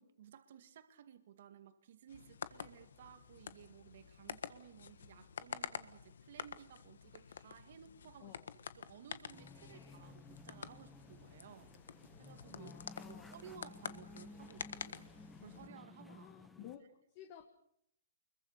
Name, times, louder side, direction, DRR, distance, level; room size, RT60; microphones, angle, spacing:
voice 1, 0.0-8.4 8.7-11.7 12.2-12.7 13.0-16.3 16.6-16.7, right 9 dB, 50° right, 9 dB, 2.1 m, -57 dB
sound 1, 2.1-15.7, left 7 dB, 70° left, 1.5 m, -49 dB
voice 2, 8.2-8.5 12.5-13.4 16.1-16.8 17.1-17.4, left 12 dB, 35° left, 6 dB, 1.8 m, -54 dB
sound 2, 9.3-16.8, left 2 dB, 5° left, 0.9 m, -56 dB
25.0 x 22.5 x 6.7 m, 0.72 s
hypercardioid pair, 160°, 0 cm